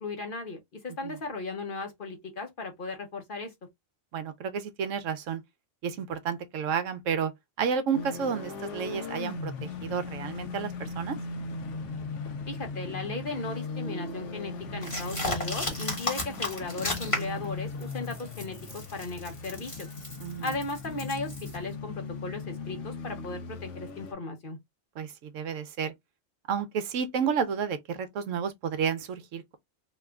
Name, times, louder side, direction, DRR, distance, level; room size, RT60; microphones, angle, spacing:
voice 1, 0.0-3.5 12.5-19.9 20.4-24.6, left 3 dB, 45° left, 0.9 m, -36 dB
voice 2, 4.1-5.4 5.8-7.3 7.6-11.2 20.2-20.5 25.0-25.9 26.5-29.6, right 7 dB, 75° right, 1.0 m, -31 dB
sound 1, 7.9-24.1, left 3 dB, 70° left, 1.0 m, -38 dB
sound 2, 14.8-17.4 17.8-21.6, left 2 dB, 25° left, 1.3 m, -34 dB
2.9 x 2.4 x 3.3 m
omnidirectional pair, 1.4 m